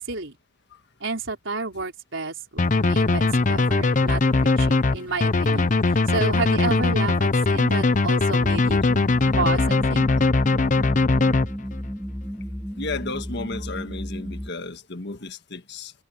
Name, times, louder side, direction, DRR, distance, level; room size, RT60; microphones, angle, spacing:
voice 1, 1.0-8.8 9.2-10.1, right 3 dB, 70° right, 4.8 m, -31 dB
sound 1, 2.6-11.9, left 3 dB, 40° left, 0.7 m, -20 dB
sound 2, 2.6-9.6, right 2 dB, 25° right, 5.8 m, -54 dB
sound 3, 8.4-14.5, equal, ahead, 2.8 m, -33 dB
voice 2, 12.8-15.9, left 3 dB, 60° left, 1.6 m, -33 dB
head